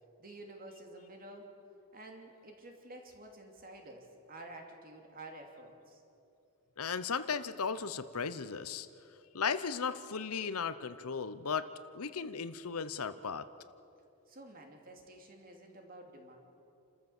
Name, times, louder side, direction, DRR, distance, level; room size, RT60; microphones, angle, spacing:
voice 1, 0.2-1.5 1.9-6.0 14.3-16.4, right 1 dB, 40° right, 2 dB, 2.7 m, -50 dB
voice 2, 6.8-8.9 9.3-11.7 11.9-13.5, left 6 dB, 80° left, 13 dB, 0.8 m, -36 dB
29.0 x 14.0 x 7.2 m, 2.7 s
head